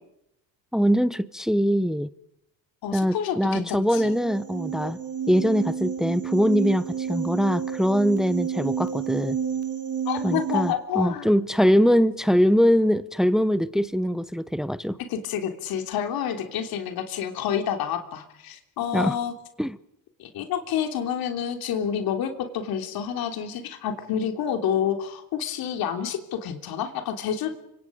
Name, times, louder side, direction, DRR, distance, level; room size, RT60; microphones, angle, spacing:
voice 1, 0.7-2.1 2.9-5.0 5.3-9.4 10.2-15.0 18.9-19.2 19.6-19.8, equal, ahead, 0.9 m, -22 dB
voice 2, 2.8-4.1 10.0-11.3 15.1-19.3 20.2-27.5, left 8 dB, 75° left, 3.3 m, -28 dB
sound 1, 4.0-10.7, right 8 dB, 40° right, 3.2 m, -30 dB
29.0 x 25.5 x 5.2 m
cardioid pair, 110°, 36 cm